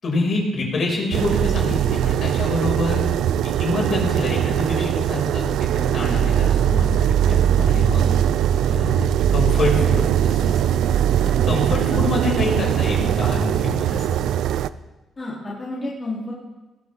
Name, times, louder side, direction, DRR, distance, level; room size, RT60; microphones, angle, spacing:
voice 1, 0.0-3.0 3.4-8.1 8.7-10.8 11.4-14.3, left 2 dB, 50° left, -2 dB, 6.6 m, -26 dB
sound 1, 1.1-14.7, right 10 dB, 80° right, 0.5 m, -20 dB
voice 2, 7.3-7.8 11.9-12.2 15.2-16.3, left 2 dB, 25° left, -6 dB, 3.9 m, -31 dB
20.5 x 15.5 x 3.9 m, 1.1 s
cardioid pair, 90°, 0 cm